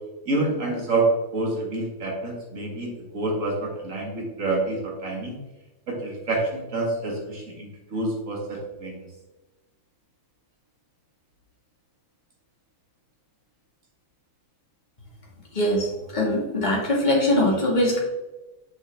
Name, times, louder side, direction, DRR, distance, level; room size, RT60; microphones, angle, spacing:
voice 1, 0.3-5.4 5.9-9.0, right 2 dB, 35° right, -1 dB, 2.1 m, -27 dB
voice 2, 15.5-18.0, left 1 dB, 20° left, -3 dB, 2.0 m, -22 dB
7.2 x 6.0 x 3.5 m, 1.1 s
omnidirectional pair, 2.4 m